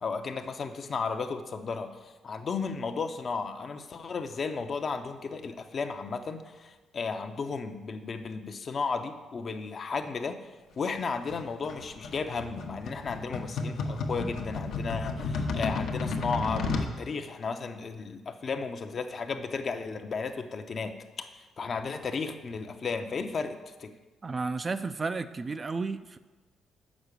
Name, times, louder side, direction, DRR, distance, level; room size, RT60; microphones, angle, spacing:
voice 1, 0.0-10.4 10.8-23.9, left 4 dB, 45° left, 7 dB, 0.6 m, -34 dB
sound 1, 11.3-16.9, left 3 dB, 75° left, 0.9 m, -32 dB
voice 2, 24.2-26.2, right 4 dB, 30° right, 11 dB, 0.3 m, -32 dB
6.2 x 4.8 x 6.6 m, 1.2 s
cardioid pair, 90°, 0 cm